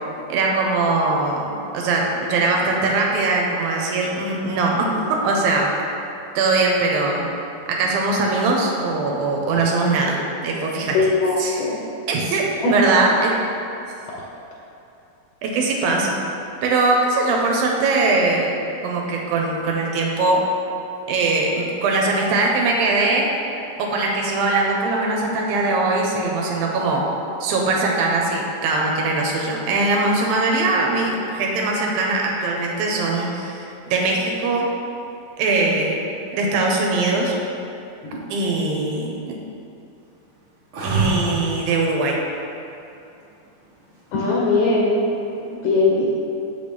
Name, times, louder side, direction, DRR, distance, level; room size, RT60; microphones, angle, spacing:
voice 1, 0.3-1.5 1.7-5.7 6.4-7.3 7.7-10.2 10.4-11.0 11.4-11.7 12.1-13.3 15.4-16.2 16.6-18.5 18.8-20.4 21.1-23.3 23.8-27.0 27.4-34.7 35.4-37.3 38.3-39.4 40.8-42.2, right 3 dB, 80° right, -1 dB, 2.5 m, -21 dB
voice 2, 10.9-11.8 12.6-12.7 44.1-45.0 45.6-46.1, left 3 dB, 75° left, -4 dB, 1.7 m, -19 dB
sound 1, 40.7-41.7 44.3-44.9, right 3 dB, 55° right, 1.5 m, -24 dB
6.8 x 5.8 x 3.4 m, 2.7 s
omnidirectional pair, 4.2 m